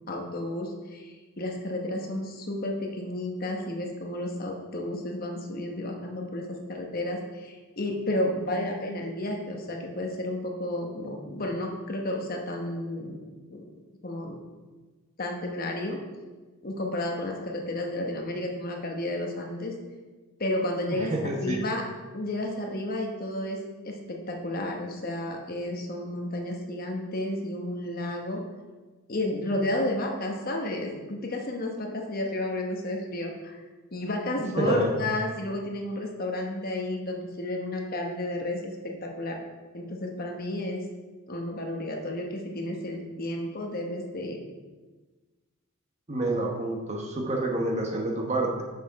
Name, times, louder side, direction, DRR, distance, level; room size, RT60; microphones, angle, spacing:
voice 1, 0.1-13.2 13.5-13.6 14.0-14.4 15.2-16.0 16.6-19.7 20.4-21.8 22.1-23.6 23.8-28.4 29.1-33.6 33.9-39.4 39.7-40.8 41.3-44.4, left 1 dB, 45° left, 1 dB, 1.0 m, -32 dB
voice 2, 21.0-21.6 34.6-34.9 46.1-48.6, right 2 dB, 30° right, 0 dB, 1.0 m, -28 dB
6.5 x 6.1 x 4.7 m, 1.3 s
head